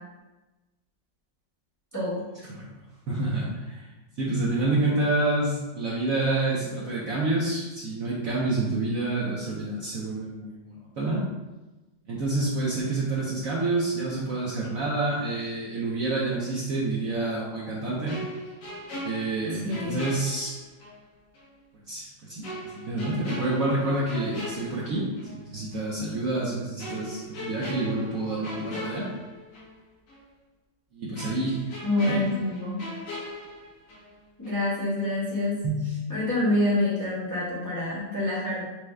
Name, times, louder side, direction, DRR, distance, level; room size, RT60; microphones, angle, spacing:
voice 1, 1.9-2.2 19.5-20.0 31.8-32.8 34.4-35.6 36.1-38.6, left 1 dB, 10° left, -9 dB, 1.1 m, -27 dB
voice 2, 3.1-3.9 4.2-11.2 12.1-18.2 19.0-20.5 21.7-29.1 30.9-31.7 32.1-32.2 35.6-36.0, right 2 dB, 60° right, -6 dB, 1.0 m, -28 dB
sound 1, 18.1-21.0 21.3-21.5 22.4-25.4 25.7-25.9 26.8-29.8 30.1-30.2 31.1-34.2 34.4-34.7, left 1 dB, 75° left, 1.7 m, -39 dB
6.1 x 2.2 x 3.3 m, 1.1 s
omnidirectional pair, 1.9 m